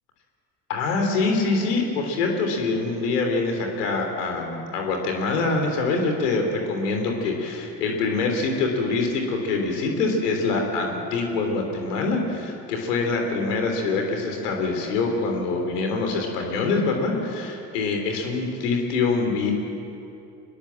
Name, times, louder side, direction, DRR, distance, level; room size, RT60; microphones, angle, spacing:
voice 1, 0.7-19.5, left 3 dB, 80° left, 3 dB, 3.6 m, -25 dB
24.5 x 21.0 x 7.6 m, 2.7 s
hypercardioid pair, 55°, 46 cm